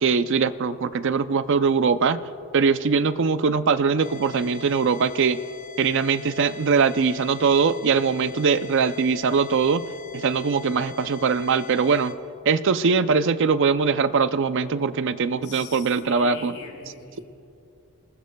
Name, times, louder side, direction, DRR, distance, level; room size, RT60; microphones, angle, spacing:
voice 1, 0.0-2.3 2.5-5.4 5.8-9.9 10.1-12.1 12.5-16.5, right 5 dB, 55° right, 13 dB, 0.5 m, -21 dB
sound 1, 4.0-12.1, left 4 dB, 35° left, 0.8 m, -41 dB
voice 2, 15.4-17.3, left 3 dB, 80° left, 0 dB, 3.5 m, -42 dB
27.5 x 19.5 x 2.3 m, 2.7 s
head